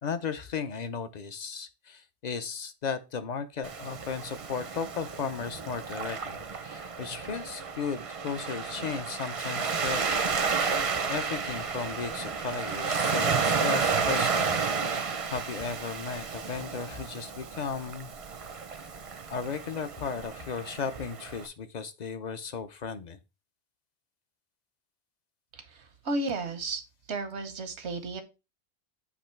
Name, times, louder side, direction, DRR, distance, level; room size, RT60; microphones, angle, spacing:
voice 1, 0.0-10.0 11.1-14.6 15.3-18.1 19.3-23.2, left 6 dB, 45° left, 0.7 m, -35 dB
Waves surf, 3.6-21.5, right 5 dB, 40° right, 0.6 m, -31 dB
voice 2, 25.5-26.8 27.1-28.2, right 2 dB, 90° right, 1.3 m, -33 dB
8.5 x 3.0 x 4.4 m
omnidirectional pair, 1.1 m